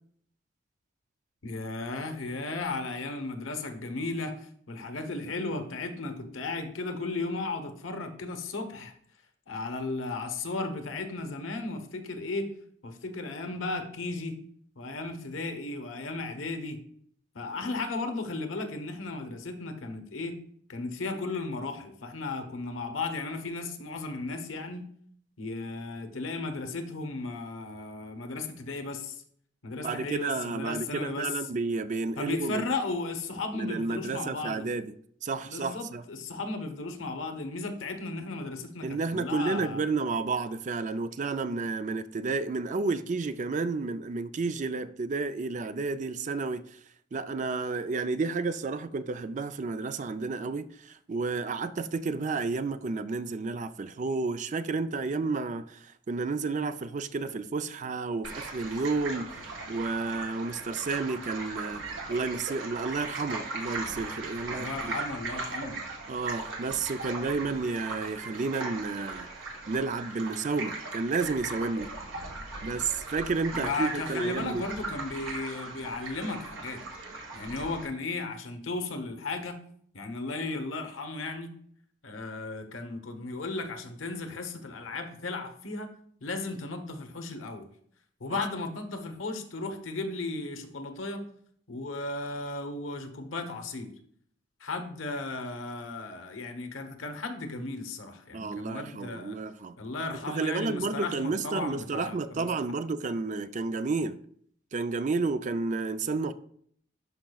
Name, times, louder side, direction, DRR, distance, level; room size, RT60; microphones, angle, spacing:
voice 1, 1.4-8.9 9.5-12.5 12.8-14.3 14.8-16.8 17.3-20.3 20.7-24.8 25.4-29.2 29.6-31.3 32.2-34.7 35.4-39.8 41.5-41.6 64.6-65.8 73.5-76.8 77.3-79.6 79.9-81.5 82.0-85.9 86.2-87.6 88.2-91.2 91.7-93.9 94.6-99.4 99.8-102.5, left 3 dB, 80° left, 1.0 m, -35 dB
voice 2, 29.8-32.7 33.5-34.9 35.2-36.0 38.8-46.8 47.1-61.8 62.1-64.9 66.1-69.3 69.7-71.9 72.6-74.6 88.3-88.4 98.3-99.8 100.3-104.2 104.7-106.3, right 4 dB, 40° right, 0.4 m, -31 dB
sound 1, 58.2-77.9, right 3 dB, 80° right, 1.5 m, -39 dB
11.5 x 5.0 x 2.3 m
head